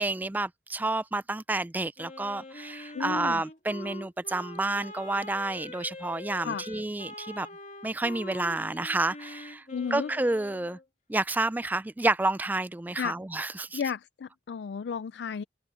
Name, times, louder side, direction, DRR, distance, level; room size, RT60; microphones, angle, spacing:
voice 1, 0.0-7.5 7.8-9.6 9.9-10.8 11.1-13.8, right 2 dB, 10° right, 0.3 m, -30 dB
Wind instrument woodwind instrument, 2.0-10.8, left 2 dB, 45° left, 2.1 m, -44 dB
voice 2, 2.9-3.4 6.4-6.7 9.7-10.1 13.0-13.2 13.7-15.4, left 6 dB, 70° left, 0.4 m, -33 dB
head